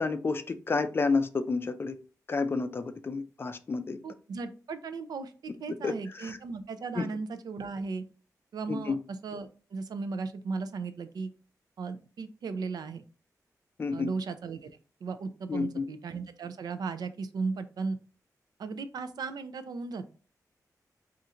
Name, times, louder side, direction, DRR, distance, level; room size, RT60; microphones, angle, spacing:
voice 1, 0.0-2.0 2.3-4.0 5.8-6.4 7.0-7.1 8.7-9.0 13.8-14.1 15.5-15.8, left 4 dB, 35° left, 10 dB, 0.4 m, -30 dB
voice 2, 4.0-8.0 8.5-9.0 9.2-11.3 11.8-13.0 13.9-14.7 15.0-18.0 18.6-20.1, right 4 dB, 85° right, 11 dB, 0.5 m, -36 dB
4.2 x 2.5 x 3.7 m, 0.36 s
wide cardioid pair, 150°, 7 cm